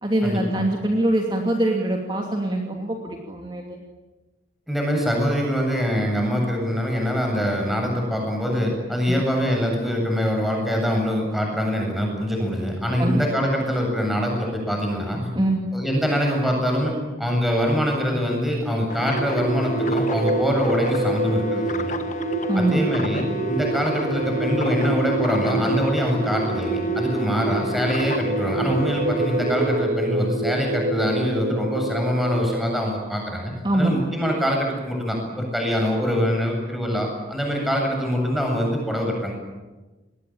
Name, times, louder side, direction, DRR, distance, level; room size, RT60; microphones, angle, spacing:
voice 1, 0.0-3.8 9.1-9.2 13.0-13.2 15.3-15.6 22.5-22.9 33.6-34.0, right 1 dB, 25° right, 1 dB, 2.7 m, -23 dB
voice 2, 4.7-15.3 15.7-21.9 22.5-39.3, equal, ahead, 0 dB, 7.9 m, -24 dB
sound 1, 18.9-29.8, left 2 dB, 40° left, 1.7 m, -34 dB
sound 2, 19.0-32.7, right 2 dB, 50° right, 4.0 m, -27 dB
28.5 x 21.5 x 9.0 m, 1.2 s
head